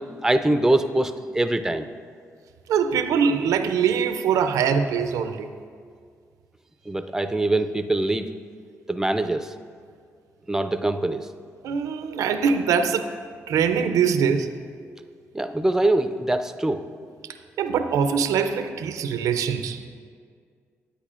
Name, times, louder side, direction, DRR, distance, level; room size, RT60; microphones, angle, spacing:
voice 1, 0.0-1.9 6.9-8.3 8.9-9.5 10.5-11.3 15.3-16.8, right 1 dB, 10° right, 9 dB, 0.4 m, -23 dB
voice 2, 2.7-5.5 11.6-13.1 13.5-14.5 17.6-19.8, right 6 dB, 85° right, 9 dB, 0.4 m, -23 dB
10.0 x 8.2 x 2.4 m, 2.1 s
cardioid pair, 75°, 6 cm